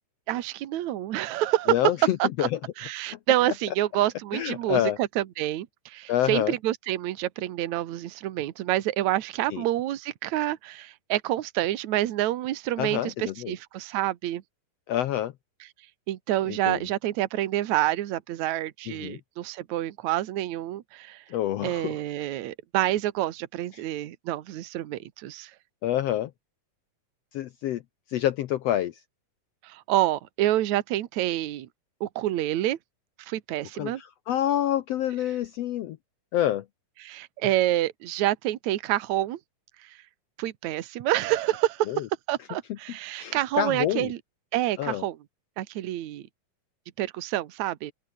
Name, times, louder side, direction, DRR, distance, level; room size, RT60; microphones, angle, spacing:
voice 1, 0.3-1.7 2.2-2.5 2.8-14.4 16.1-21.2 21.6-25.5 29.6-31.7 32.0-32.8 33.2-34.0 37.0-39.4 39.8-40.0 40.4-41.9 42.3-44.2 44.5-45.2 45.6-46.2 47.0-47.9, right 14 dB, 65° right, 2.4 m, -28 dB
voice 2, 1.7-2.5 4.3-5.0 6.1-6.5 9.5-9.6 12.8-13.5 14.9-15.3 16.5-16.8 18.9-19.2 21.3-21.9 25.8-26.3 27.3-27.8 28.1-28.9 33.8-36.0 36.3-36.6 41.9-42.0 43.2-44.1 44.8-45.0, left 12 dB, 75° left, 1.5 m, -27 dB
open air
omnidirectional pair, 3.8 m